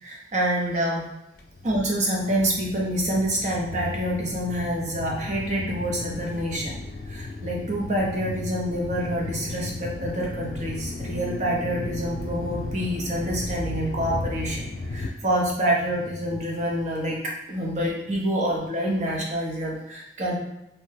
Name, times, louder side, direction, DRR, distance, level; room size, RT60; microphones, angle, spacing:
voice 1, 0.0-1.1 1.6-6.8 7.1-20.3, right 1 dB, 40° right, -2 dB, 0.6 m, -27 dB
sound 1, 1.4-15.1, left 2 dB, 60° left, 0.3 m, -35 dB
2.8 x 2.1 x 3.2 m, 0.85 s
head